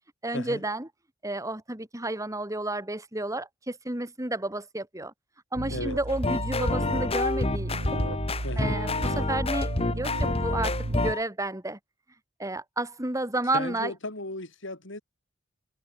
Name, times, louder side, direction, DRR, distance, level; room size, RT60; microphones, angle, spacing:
voice 1, 0.2-0.9 1.2-5.1 5.5-8.0 8.6-11.8 12.4-13.9, right 2 dB, 15° right, 2.5 m, -31 dB
sound 1, 5.6-11.1, right 1 dB, 80° right, 1.8 m, -33 dB
sound 2, 6.1-11.2, left 2 dB, 30° left, 1.4 m, -28 dB
voice 2, 8.4-8.7 13.5-15.0, left 2 dB, 60° left, 6.2 m, -35 dB
head